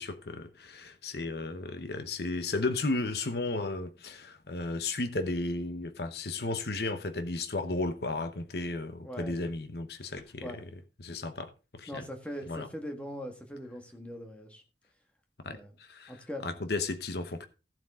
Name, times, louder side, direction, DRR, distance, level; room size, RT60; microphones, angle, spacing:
voice 1, 0.0-10.6 11.0-12.1 12.5-12.7 15.4-17.5, left 2 dB, 65° left, 0.9 m, -34 dB
voice 2, 9.0-9.4 10.0-10.1 10.4-10.6 11.9-14.6 15.4-15.7 16.1-16.4, equal, 5° left, 1.7 m, -41 dB
14.5 x 7.6 x 3.6 m
head